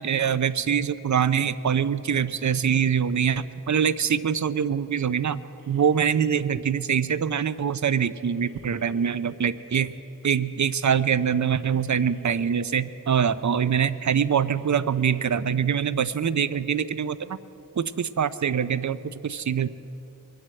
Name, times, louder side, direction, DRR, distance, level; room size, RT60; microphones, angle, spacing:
voice 1, 0.0-5.4 5.7-9.9 10.2-17.4 17.8-19.7, right 7 dB, 55° right, 15 dB, 0.5 m, -24 dB
sound 1, 5.6-6.2 8.2-9.2 11.2-12.2 14.2-15.2, right 1 dB, 80° right, 2.8 m, -53 dB
22.5 x 7.8 x 7.6 m, 3.0 s
wide cardioid pair, 55°, 34 cm